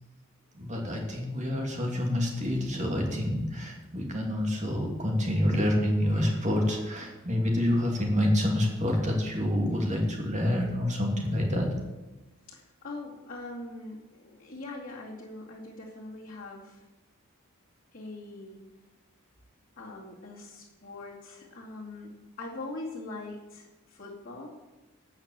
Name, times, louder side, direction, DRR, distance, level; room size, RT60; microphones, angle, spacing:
voice 1, 0.5-11.7, left 1 dB, 35° right, 1 dB, 2.7 m, -27 dB
voice 2, 12.5-16.8 17.9-18.7 19.8-24.6, left 2 dB, 40° left, -6 dB, 2.4 m, -42 dB
17.5 x 6.1 x 7.5 m, 1.1 s
head